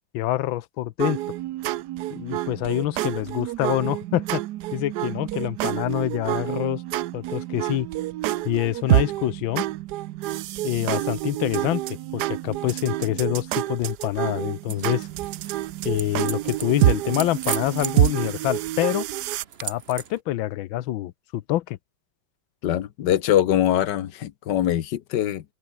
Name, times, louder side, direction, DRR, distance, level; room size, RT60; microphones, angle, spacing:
voice 1, 0.1-1.2 2.1-4.4 4.7-6.8 7.1-7.9 8.4-9.7 10.6-15.1 15.8-19.0 19.6-21.8, left 14 dB, 85° left, 1.5 m, -26 dB
sound 1, 1.0-19.4, right 15 dB, 70° right, 1.0 m, -27 dB
sound 2, 14.7-20.2, right 7 dB, 45° right, 0.9 m, -38 dB
voice 2, 22.6-25.4, left 11 dB, 65° left, 1.5 m, -23 dB
open air
omnidirectional pair, 2.1 m